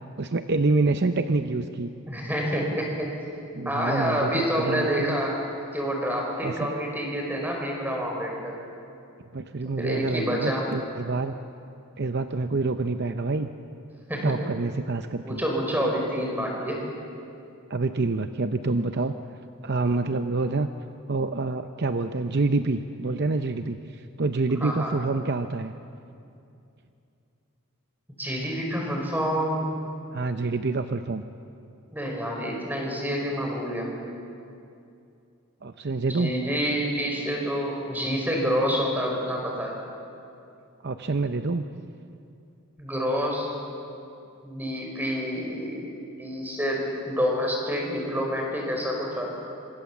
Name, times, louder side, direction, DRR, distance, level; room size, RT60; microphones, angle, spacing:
voice 1, 0.2-1.9 3.5-5.2 6.4-6.7 9.3-11.3 12.0-13.5 14.2-15.4 17.7-19.1 19.6-20.7 21.1-25.7 30.1-31.2 35.6-36.3 40.8-41.7, right 3 dB, 50° right, 8 dB, 0.7 m, -27 dB
voice 2, 2.1-3.2 3.6-5.4 5.7-8.5 9.8-10.6 14.1-14.3 15.2-16.8 24.6-24.9 28.2-29.7 31.9-33.9 36.1-39.7 42.8-43.5 44.4-49.3, equal, 10° right, 0 dB, 4.9 m, -28 dB
26.0 x 25.5 x 7.2 m, 2.6 s
head